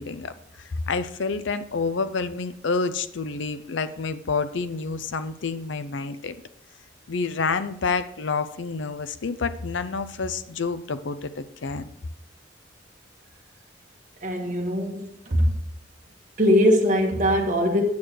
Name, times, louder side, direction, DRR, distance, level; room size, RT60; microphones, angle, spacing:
voice 1, 0.0-6.4 7.1-11.9, left 4 dB, 65° left, 12 dB, 0.6 m, -28 dB
voice 2, 14.2-15.6 16.4-17.8, equal, 40° right, 1 dB, 1.7 m, -21 dB
9.6 x 6.5 x 4.5 m, 0.71 s
head